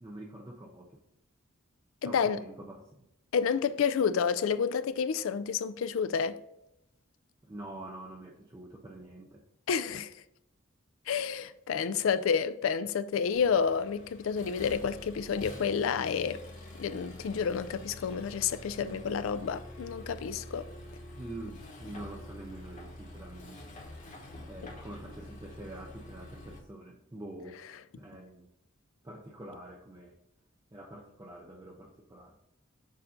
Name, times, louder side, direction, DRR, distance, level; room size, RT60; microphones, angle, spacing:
voice 1, 0.0-1.0 2.0-3.0 7.4-9.4 21.1-23.7 24.4-27.6 28.0-28.5 29.0-30.2 30.7-32.4, right 1 dB, 20° right, 0.6 m, -46 dB
voice 2, 2.0-2.4 3.3-6.4 9.7-10.1 11.1-16.4 16.8-20.7, left 6 dB, 70° left, 0.4 m, -29 dB
Accelerating revving vroom, 13.3-26.6, left 1 dB, 40° left, 1.1 m, -47 dB
6.6 x 2.6 x 5.5 m
head